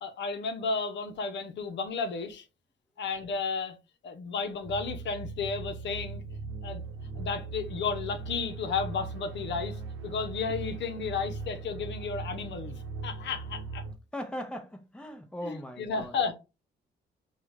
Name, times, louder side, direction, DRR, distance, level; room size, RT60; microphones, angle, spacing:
voice 1, 0.0-2.4 3.0-3.8 4.0-6.2 6.6-6.8 7.1-13.8 15.4-16.3, left 5 dB, 65° left, 0.7 m, -33 dB
sound 1, 4.6-13.9, right 4 dB, 80° right, 0.8 m, -39 dB
voice 2, 14.1-16.2, equal, 5° left, 0.8 m, -39 dB
4.9 x 2.3 x 3.2 m
cardioid pair, 90°, 20 cm